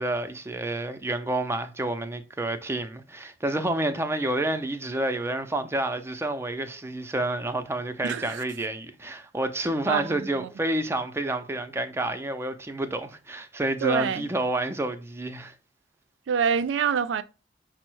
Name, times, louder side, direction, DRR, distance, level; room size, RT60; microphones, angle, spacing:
voice 1, 0.0-15.5, right 1 dB, 15° right, 0.4 m, -29 dB
voice 2, 8.0-8.4 9.9-10.5 13.8-14.3 16.3-17.2, right 6 dB, 80° right, 0.4 m, -26 dB
5.3 x 2.0 x 4.4 m
head